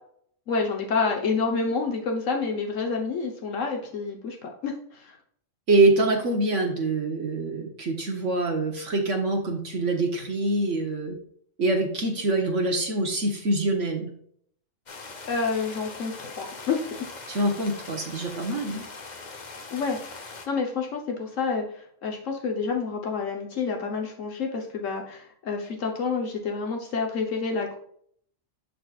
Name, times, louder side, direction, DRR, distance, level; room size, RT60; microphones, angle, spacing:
voice 1, 0.5-5.2 15.2-16.8 19.7-20.0 20.5-27.8, left 4 dB, 75° left, 2 dB, 1.4 m, -28 dB
voice 2, 5.7-11.2 11.6-14.1 17.3-18.8, right 2 dB, 65° right, 2 dB, 1.5 m, -25 dB
sound 1, 14.9-20.5, left 3 dB, 40° left, 0.9 m, -41 dB
12.5 x 4.3 x 2.4 m, 0.64 s
omnidirectional pair, 1.4 m